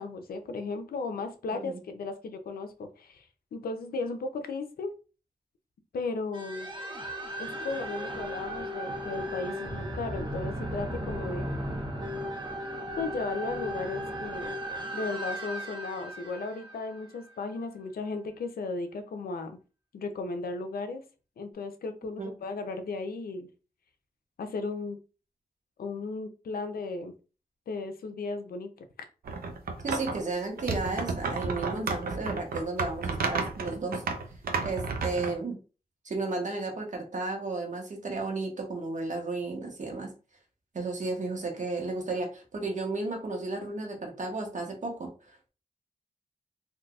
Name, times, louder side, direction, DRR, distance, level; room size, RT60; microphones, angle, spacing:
voice 1, 0.0-3.2 3.5-4.9 5.9-6.7 7.4-11.5 13.0-14.6 14.9-19.5 19.9-21.0 21.4-23.5 24.4-25.0 25.8-27.1 27.7-28.9, left 3 dB, 80° left, 7 dB, 0.6 m, -35 dB
sound 1, 6.3-17.6, equal, 30° right, 1.0 m, -36 dB
sound 2, 29.3-30.2 30.6-35.3, right 4 dB, 75° right, 0.6 m, -32 dB
voice 2, 29.8-34.0 34.6-35.6 36.0-40.1 40.7-45.5, right 3 dB, 55° right, 2 dB, 1.2 m, -33 dB
3.8 x 2.6 x 2.4 m, 0.35 s
cardioid pair, 50°, 15 cm